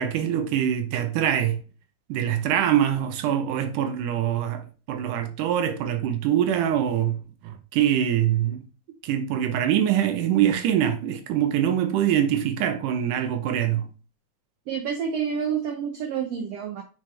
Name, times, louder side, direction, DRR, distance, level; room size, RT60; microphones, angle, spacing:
voice 1, 0.0-1.6 2.1-8.6 9.0-13.9, right 10 dB, 90° right, 2.4 m, -24 dB
voice 2, 14.7-16.8, right 7 dB, 65° right, 1.9 m, -28 dB
6.2 x 6.0 x 3.3 m
omnidirectional pair, 3.5 m